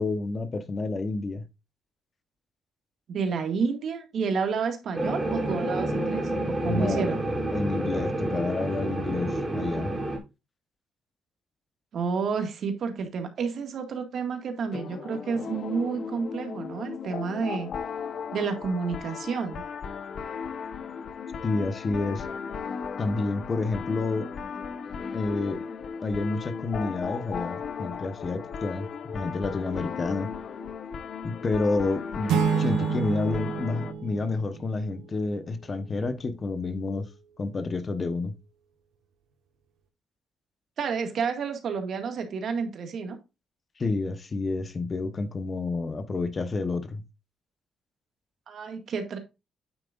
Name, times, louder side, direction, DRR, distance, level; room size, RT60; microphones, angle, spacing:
voice 1, 0.0-1.4 6.6-7.2 7.5-9.9 21.4-22.3 23.0-24.3 25.1-25.6 26.0-30.3 31.2-37.1 37.4-38.3 43.8-47.0, left 3 dB, 35° left, 1.0 m, -29 dB
voice 2, 3.1-7.3 11.9-17.7 18.3-19.6 40.8-43.2 48.5-49.2, right 5 dB, 60° right, 1.9 m, -30 dB
sound 1, 4.9-10.2, right 1 dB, 15° right, 3.1 m, -29 dB
sound 2, 14.7-33.9, left 6 dB, 55° left, 0.8 m, -36 dB
sound 3, 32.3-35.1, right 6 dB, 85° right, 1.5 m, -28 dB
9.1 x 7.5 x 2.5 m
cardioid pair, 90°, 0 cm